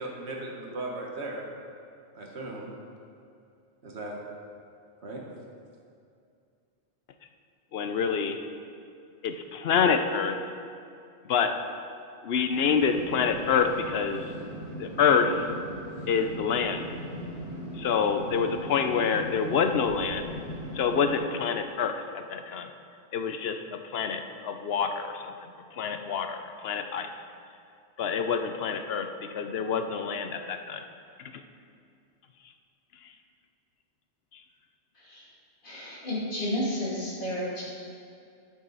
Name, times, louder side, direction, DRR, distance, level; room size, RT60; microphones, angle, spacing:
voice 1, 0.0-1.5 2.1-2.7 3.8-4.2 5.0-5.3, right 2 dB, 75° right, -1 dB, 1.6 m, -37 dB
voice 2, 7.7-8.4 9.2-10.4 11.3-11.5 12.2-14.3 14.8-15.4 16.1-16.9 17.8-20.3 20.7-22.7 23.1-23.6 23.9-25.3 25.8-27.1 28.0-30.8, left 6 dB, 70° left, 7 dB, 0.8 m, -27 dB
sound 1, 12.5-21.2, right 1 dB, 25° right, 2.2 m, -39 dB
voice 3, 35.6-37.6, left 1 dB, 50° left, -8 dB, 2.5 m, -31 dB
12.5 x 6.3 x 4.0 m, 2.4 s
omnidirectional pair, 1.1 m